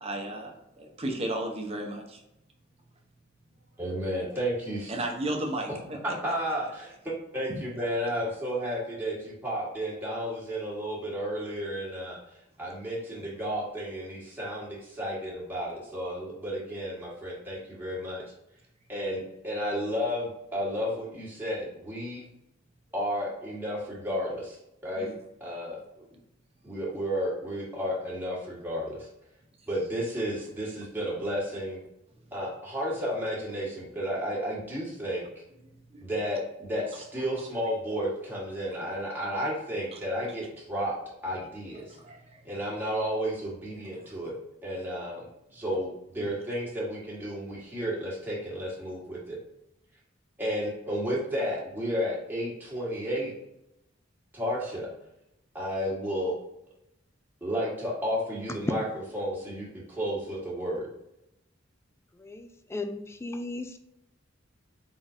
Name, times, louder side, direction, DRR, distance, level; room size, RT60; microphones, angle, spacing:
voice 1, 0.0-2.2 4.9-6.1 7.5-7.9 24.9-25.2 35.9-36.0 39.9-40.0 41.9-42.4 44.0-44.1, right 1 dB, 30° right, 2 dB, 0.9 m, -34 dB
voice 2, 3.8-4.9 6.0-12.2 12.6-18.2 18.9-22.2 22.9-25.1 25.4-26.0 26.6-29.1 29.7-31.8 32.3-35.3 36.0-42.0 42.4-44.3 44.6-45.2 45.5-49.4 50.4-53.3 54.3-54.9 55.5-56.4 57.4-58.8 59.1-60.9, equal, 10° right, -6 dB, 1.5 m, -32 dB
voice 3, 62.2-63.8, left 2 dB, 15° left, 7 dB, 0.3 m, -36 dB
4.5 x 3.9 x 2.7 m, 0.84 s
head